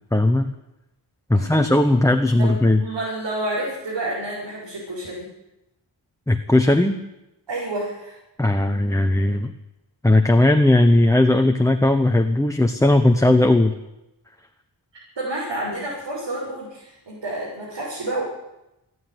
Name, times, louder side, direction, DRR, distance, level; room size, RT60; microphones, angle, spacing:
voice 1, 0.1-0.5 1.3-2.8 6.3-7.0 8.4-9.5 10.0-13.7, left 1 dB, 5° left, 5 dB, 1.0 m, -17 dB
voice 2, 2.4-5.3 7.5-8.2 15.2-18.2, right 1 dB, 80° right, -6 dB, 7.2 m, -29 dB
27.5 x 9.7 x 9.8 m, 0.91 s
wide cardioid pair, 130°, 42 cm